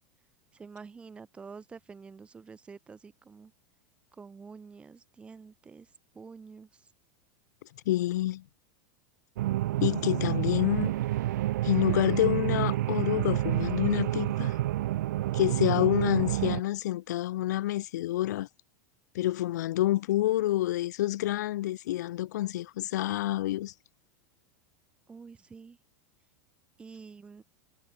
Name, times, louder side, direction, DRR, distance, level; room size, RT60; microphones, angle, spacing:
voice 1, 0.5-3.5 4.1-6.9 25.1-25.8 26.8-27.4, right 5 dB, 10° right, 5.6 m, -48 dB
voice 2, 7.8-8.4 9.8-10.9 11.6-14.6 15.3-18.5 19.1-23.7, left 15 dB, 75° left, 3.3 m, -28 dB
sound 1, 9.4-16.6, right 15 dB, 80° right, 1.7 m, -29 dB
supercardioid pair, 165°, 9 cm